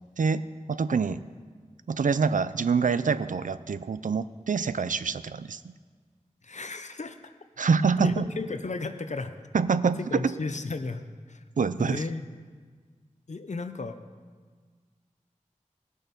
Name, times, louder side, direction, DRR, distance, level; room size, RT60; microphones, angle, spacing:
voice 1, 0.2-1.2 1.9-5.6 7.6-8.2 9.5-10.3 11.6-12.0, right 5 dB, 90° right, 14 dB, 0.4 m, -26 dB
voice 2, 6.4-7.3 8.0-9.3 10.1-11.0 11.3-11.4 11.8-12.2 13.3-14.0, left 3 dB, 65° left, 9 dB, 0.7 m, -34 dB
17.0 x 6.4 x 5.2 m, 1.5 s
wide cardioid pair, 60°, 13 cm